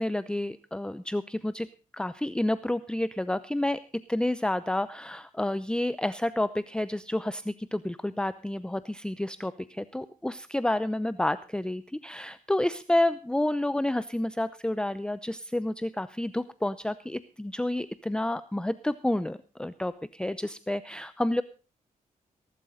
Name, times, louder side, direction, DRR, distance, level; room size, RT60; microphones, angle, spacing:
voice 1, 0.0-1.7 1.9-21.4, left 1 dB, 5° left, 14 dB, 0.7 m, -30 dB
19.5 x 12.0 x 3.8 m, 0.35 s
cardioid pair, 75°, 15 cm